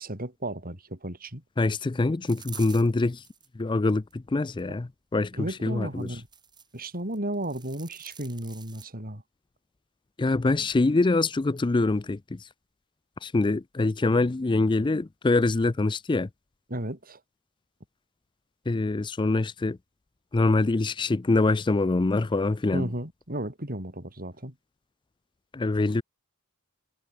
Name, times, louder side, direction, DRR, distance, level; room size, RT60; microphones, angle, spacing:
voice 1, 0.0-1.4 5.3-6.3 6.7-9.2 16.7-17.2 22.7-24.5, right 1 dB, 40° right, 7.3 m, -34 dB
voice 2, 1.6-3.2 3.6-5.3 5.6-6.1 10.2-12.5 13.2-16.3 18.7-19.8 20.3-22.9 25.5-26.0, left 2 dB, 20° left, 0.4 m, -24 dB
sound 1, 2.3-3.5 4.1-4.7 6.0-6.8 7.1-8.8, right 6 dB, 20° right, 5.2 m, -47 dB
head